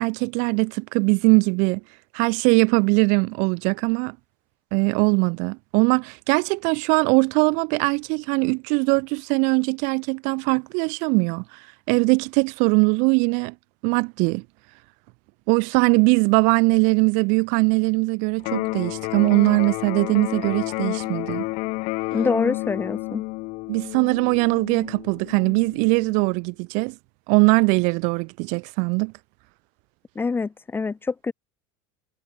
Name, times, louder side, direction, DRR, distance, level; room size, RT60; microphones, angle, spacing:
voice 1, 0.0-1.8 2.1-4.2 4.7-11.4 11.9-13.5 13.8-14.4 15.5-21.4 23.7-27.0 27.3-29.1, right 33 dB, 65° right, 3.5 m, -21 dB
Electric guitar, 18.4-26.4, left 25 dB, 60° left, 5.4 m, -31 dB
voice 2, 22.1-23.2 30.2-31.3, left 4 dB, 15° left, 4.2 m, -25 dB
supercardioid pair, 135°, 14 cm